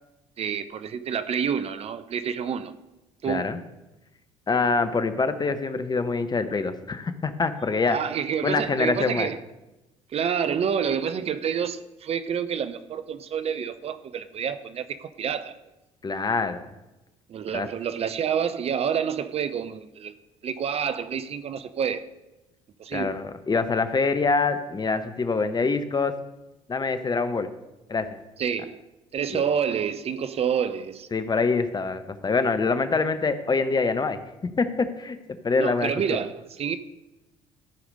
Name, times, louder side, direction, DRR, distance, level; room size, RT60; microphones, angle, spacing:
voice 1, 0.4-2.8 3.2-3.5 7.9-9.4 10.1-15.5 17.3-20.1 20.4-22.1 22.8-23.2 28.4-28.8 29.1-31.1 35.6-36.8, right 7 dB, 40° right, 0.5 m, -28 dB
voice 2, 3.3-3.6 4.5-8.0 8.4-9.3 16.0-16.6 17.5-17.7 22.9-26.1 26.7-27.5 27.9-28.1 31.1-35.2 35.4-36.2, left 4 dB, 25° left, 0.9 m, -25 dB
13.5 x 4.9 x 5.3 m
hypercardioid pair, 55°, 15 cm